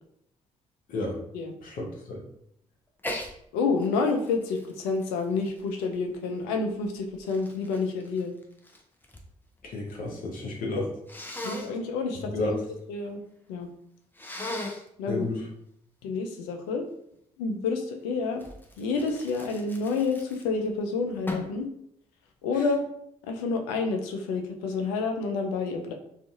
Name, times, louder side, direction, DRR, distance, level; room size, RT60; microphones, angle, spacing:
voice 1, 1.6-2.2 9.6-10.9 12.1-12.6 15.1-15.5 22.5-22.7, left 2 dB, 60° left, -1 dB, 0.8 m, -32 dB
Sneeze, 3.0-3.3 3.8-6.1 6.8-9.3 9.6-10.2 11.1-11.7 14.1-14.9 18.4-20.7 21.3-21.6, left 1 dB, 10° left, 0.6 m, -38 dB
voice 2, 3.5-8.3 11.4-12.6 12.9-13.2 13.5-13.7 15.0-15.3 16.0-16.8 17.4-18.4 18.8-21.7 22.4-22.8 23.3-25.9, left 4 dB, 80° left, 4 dB, 0.4 m, -29 dB
2.5 x 2.4 x 2.4 m, 0.74 s
hypercardioid pair, 40°, 16 cm